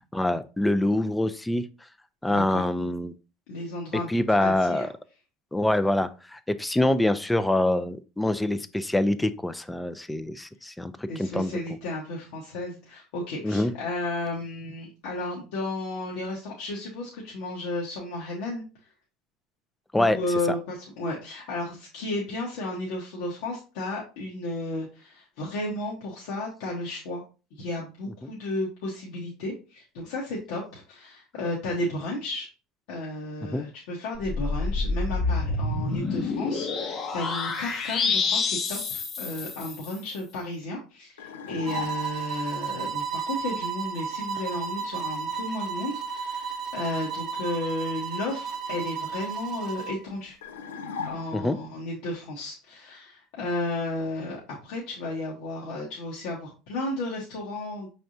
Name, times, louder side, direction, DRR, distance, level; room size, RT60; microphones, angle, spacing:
voice 1, 0.1-1.7 2.2-3.1 4.1-4.9 5.5-11.5 13.4-13.7 19.9-20.2 20.5-20.6 33.5-33.6 51.3-51.6, left 1 dB, 10° left, 12 dB, 0.4 m, -25 dB
voice 2, 2.3-2.7 3.5-4.9 11.1-18.6 19.9-27.2 27.5-32.5 32.9-50.4 51.1-57.9, left 2 dB, 75° left, -3 dB, 1.1 m, -33 dB
sound 1, 34.2-40.0, left 4 dB, 45° left, 0.8 m, -28 dB
sound 2, 41.2-42.4 50.4-51.7, left 5 dB, 90° left, 0.4 m, -37 dB
sound 3, 41.7-50.0, right 5 dB, 45° right, 0.7 m, -33 dB
5.3 x 3.4 x 2.6 m, 0.33 s
hypercardioid pair, 90°, 0 cm